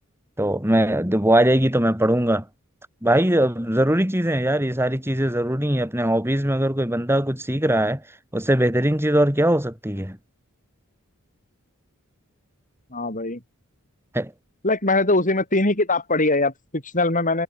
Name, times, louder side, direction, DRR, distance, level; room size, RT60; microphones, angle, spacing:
voice 1, 0.4-2.4 3.0-8.0 8.3-10.2 14.1-14.3, right 1 dB, 10° right, 5.4 m, -21 dB
voice 2, 12.9-13.4 14.6-17.4, left 2 dB, 40° left, 7.6 m, -21 dB
head